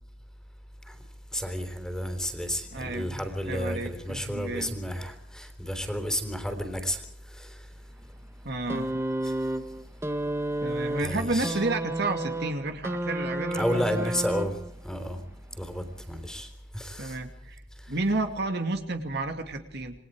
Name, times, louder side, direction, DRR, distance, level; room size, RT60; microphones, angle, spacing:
voice 1, 1.3-7.6 9.2-9.3 11.0-11.6 13.5-14.6 14.8-15.2 15.6-17.2 17.8-17.9, equal, 5° left, 3.6 m, -32 dB
voice 2, 2.7-4.8 8.4-8.9 10.6-14.1 17.0-17.6 17.9-19.9, right 2 dB, 65° right, 2.5 m, -31 dB
sound 1, 8.7-14.9 15.9-16.0, right 1 dB, 15° right, 1.2 m, -31 dB
28.0 x 20.5 x 4.9 m
head